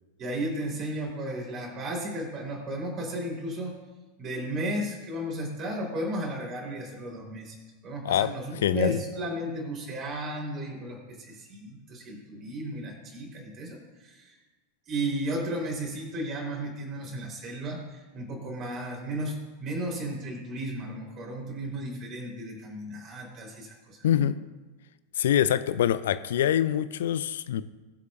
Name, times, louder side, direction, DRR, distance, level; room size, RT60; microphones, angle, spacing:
voice 1, 0.2-3.8 4.2-7.6 7.8-14.4 14.9-24.2, right 1 dB, 30° right, -1 dB, 4.2 m, -34 dB
voice 2, 8.6-9.0 24.0-24.4 25.2-27.6, left 10 dB, 60° left, 14 dB, 0.4 m, -24 dB
21.5 x 8.1 x 2.6 m, 1.2 s
figure-of-eight pair, 90°, 0 cm